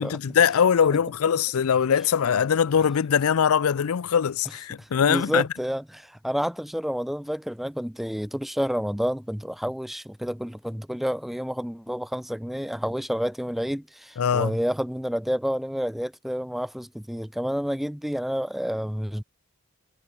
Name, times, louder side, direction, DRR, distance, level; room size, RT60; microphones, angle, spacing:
voice 1, 0.0-5.5 14.2-14.6, left 7 dB, 80° left, 0.4 m, -22 dB
voice 2, 4.8-19.2, equal, ahead, 0.3 m, -29 dB
head